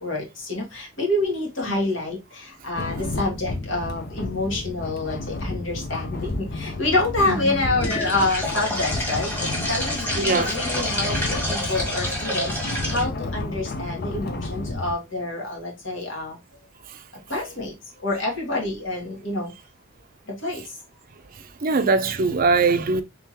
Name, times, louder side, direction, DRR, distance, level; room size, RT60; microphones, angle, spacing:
voice 1, 0.0-11.2 11.4-16.4 17.3-19.5 20.3-20.8, left 2 dB, 75° left, 1.8 m, -27 dB
sound 1, 2.7-14.9, left 2 dB, 50° left, 0.6 m, -31 dB
voice 2, 7.3-7.6 10.1-10.6 16.9-17.0 21.3-23.0, right 4 dB, 45° right, 0.5 m, -22 dB
sound 2, 7.8-13.0, left 1 dB, 10° left, 1.6 m, -28 dB
3.6 x 3.4 x 2.8 m
head